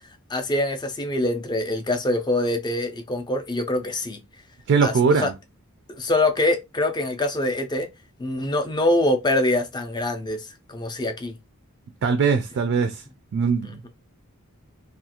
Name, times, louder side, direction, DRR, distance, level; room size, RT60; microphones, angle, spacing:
voice 1, 0.3-4.2 4.8-5.3 5.9-7.9 8.2-11.4, left 1 dB, 20° left, 0.4 m, -24 dB
voice 2, 4.7-5.3 12.0-13.0 13.3-13.9, right 5 dB, 55° right, 0.3 m, -21 dB
2.4 x 2.2 x 2.8 m
head